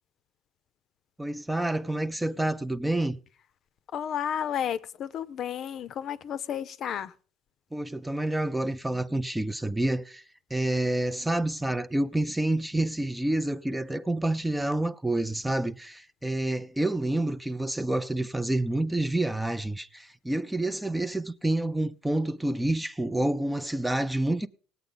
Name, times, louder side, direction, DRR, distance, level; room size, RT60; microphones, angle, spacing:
voice 1, 1.2-3.2 7.7-10.2 10.5-24.5, right 1 dB, 5° right, 0.5 m, -28 dB
voice 2, 3.9-7.1, left 9 dB, 50° left, 0.6 m, -32 dB
18.5 x 8.1 x 3.9 m
cardioid pair, 115°, 0 cm